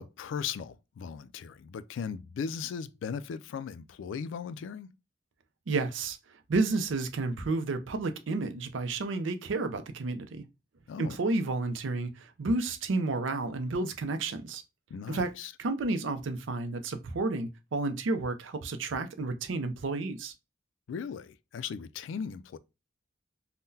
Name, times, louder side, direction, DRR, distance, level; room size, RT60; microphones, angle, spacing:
voice 1, 0.0-4.9 10.9-11.2 14.9-15.5 20.9-22.6, left 6 dB, 75° left, 0.3 m, -38 dB
voice 2, 5.7-6.2 6.5-10.4 11.0-14.6 15.1-15.3 15.6-20.3, right 3 dB, 85° right, 0.5 m, -31 dB
3.7 x 2.1 x 2.6 m
head